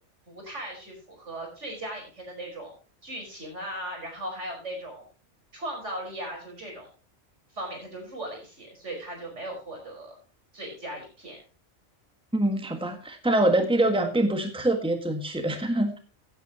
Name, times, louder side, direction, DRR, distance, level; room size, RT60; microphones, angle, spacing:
voice 1, 0.3-2.7 3.0-5.0 5.5-6.9 7.5-10.2 10.5-11.4, right 1 dB, 80° right, 2 dB, 5.4 m, -38 dB
voice 2, 12.3-16.0, right 1 dB, 5° right, 6 dB, 1.5 m, -24 dB
16.5 x 9.4 x 2.9 m, 0.36 s
omnidirectional pair, 1.2 m